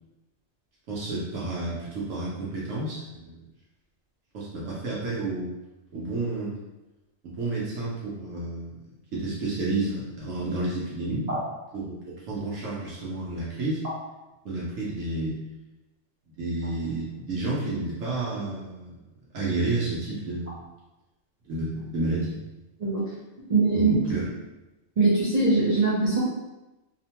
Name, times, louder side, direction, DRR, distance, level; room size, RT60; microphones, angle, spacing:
voice 1, 0.9-3.4 4.3-5.5 5.9-6.6 7.2-8.7 9.1-11.3 11.7-12.0 12.3-13.8 14.4-15.4 16.4-19.0 19.3-20.6 21.5-22.4 23.7-23.8 24.1-24.3, right 2 dB, 80° right, -7 dB, 1.1 m, -30 dB
voice 2, 23.5-23.9 25.0-26.2, right 3 dB, 50° right, -8 dB, 0.5 m, -22 dB
2.8 x 2.1 x 2.8 m, 1.0 s
omnidirectional pair, 1.4 m